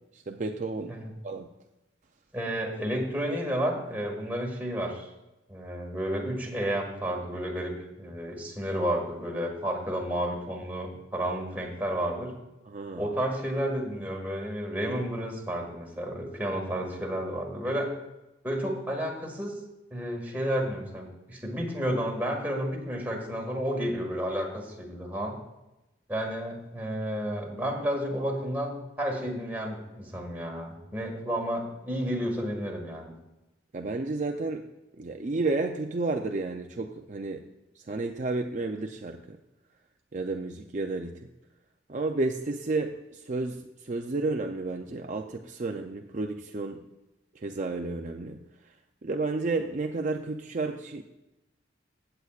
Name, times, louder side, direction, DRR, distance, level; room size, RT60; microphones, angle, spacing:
voice 1, 0.1-1.0 1.2-1.5 12.7-13.1 33.7-34.6 35.0-37.4 37.8-39.4 40.1-41.3 41.9-46.8 47.3-48.4 48.7-48.8 49.0-51.0, right 3 dB, 40° right, 4 dB, 0.5 m, -31 dB
voice 2, 2.3-5.1 5.5-7.7 8.0-12.3 13.0-17.9 18.4-19.5 19.9-25.4 26.1-33.1, equal, 10° right, -1 dB, 1.8 m, -31 dB
16.5 x 7.9 x 2.4 m, 0.98 s
head